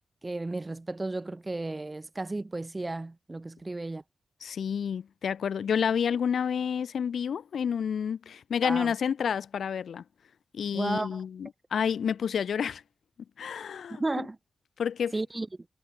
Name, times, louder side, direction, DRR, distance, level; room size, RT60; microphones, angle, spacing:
voice 1, 0.2-4.0 8.6-8.9 10.7-11.2 13.9-14.4 15.1-15.5, right 2 dB, 20° right, 0.7 m, -33 dB
voice 2, 4.4-10.0 10.5-12.8 13.4-14.3 14.8-15.1, left 7 dB, 80° left, 1.7 m, -29 dB
wide cardioid pair, 140°, 0 cm